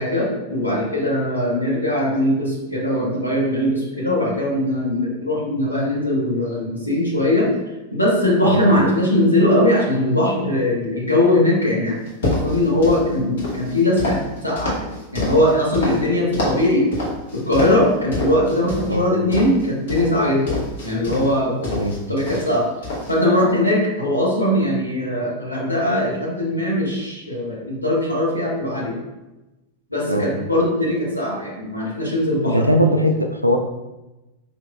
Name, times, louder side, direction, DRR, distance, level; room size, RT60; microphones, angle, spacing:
voice 1, 0.0-7.5 7.9-16.9 17.3-20.6 20.8-21.7 22.1-22.7 23.1-29.0 29.9-32.7, left 1 dB, 85° left, -5 dB, 1.1 m, -20 dB
sound 1, 12.1-13.0 13.4-16.0 16.3-16.6 16.9-17.8 18.1-18.9 19.3-21.3 21.6-22.6 22.8-23.1, left 2 dB, 60° left, 1.1 m, -26 dB
voice 2, 32.4-33.6, equal, 90° right, 5 dB, 0.4 m, -19 dB
5.1 x 2.8 x 2.3 m, 1.0 s
figure-of-eight pair, 90°, 0 cm